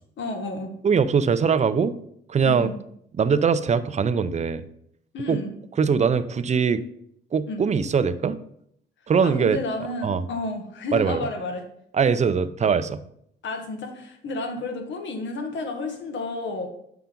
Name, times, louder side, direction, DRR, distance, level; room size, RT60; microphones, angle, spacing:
voice 1, 0.2-0.7 2.4-2.7 5.1-5.5 7.5-7.6 9.2-11.6 13.4-16.7, left 2 dB, 70° left, 4 dB, 1.7 m, -31 dB
voice 2, 0.8-1.9 2.3-2.7 3.2-4.6 5.3-5.4 5.8-6.8 7.3-8.4 9.1-9.6 10.0-10.2 10.9-11.3 11.9-13.0, right 6 dB, 35° right, 12 dB, 0.6 m, -21 dB
8.1 x 5.9 x 3.8 m, 0.70 s
cardioid pair, 90°, 20 cm